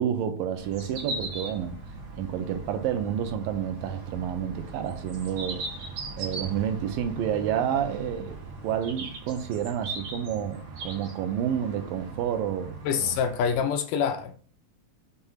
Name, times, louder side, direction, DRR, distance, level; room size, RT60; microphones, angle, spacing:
voice 1, 0.0-1.8 2.2-5.6 6.2-12.8 13.0-13.2, right 9 dB, 80° right, 2.3 m, -29 dB
sound 1, 0.6-13.6, right 3 dB, 55° right, 2.6 m, -39 dB
voice 2, 12.8-14.4, left 7 dB, 75° left, 2.1 m, -26 dB
6.9 x 3.4 x 5.7 m
omnidirectional pair, 4.2 m